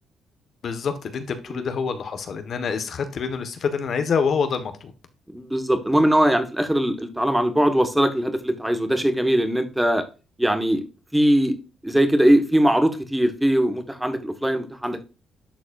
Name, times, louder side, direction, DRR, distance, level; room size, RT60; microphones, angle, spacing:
voice 1, 0.6-4.9, left 6 dB, 55° left, 1.3 m, -26 dB
voice 2, 5.3-10.0 10.4-10.8 11.1-11.6 11.8-15.0, right 1 dB, 5° right, 1.4 m, -21 dB
11.5 x 4.0 x 2.5 m
cardioid pair, 90°, 0 cm